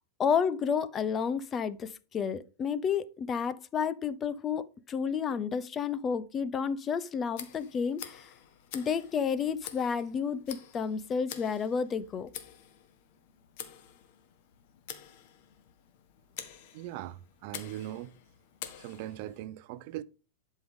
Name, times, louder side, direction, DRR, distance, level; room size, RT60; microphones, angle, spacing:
voice 1, 0.2-8.3 8.7-12.3, left 6 dB, 20° left, 0.5 m, -31 dB
Tick, 7.3-19.4, left 10 dB, 50° left, 1.4 m, -48 dB
voice 2, 16.7-18.1 18.8-20.0, right 13 dB, 50° right, 0.5 m, -40 dB
11.0 x 5.4 x 3.6 m
supercardioid pair, 155°, 0 cm